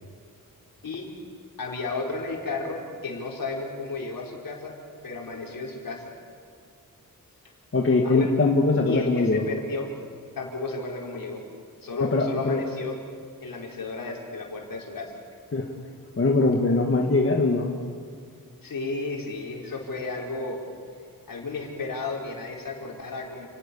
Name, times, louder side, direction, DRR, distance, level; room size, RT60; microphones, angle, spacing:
voice 1, 1.6-4.7 5.0-6.0 8.0-8.3 8.9-9.9 10.3-11.4 11.8-13.0 13.4-15.1 18.6-20.6 21.3-23.5, left 3 dB, 70° left, 0 dB, 4.7 m, -33 dB
voice 2, 7.7-9.4 12.0-12.6 15.5-15.7 16.2-17.7, left 3 dB, 40° left, 1 dB, 1.9 m, -22 dB
29.5 x 19.5 x 7.1 m, 2.1 s
wide cardioid pair, 135°, 35 cm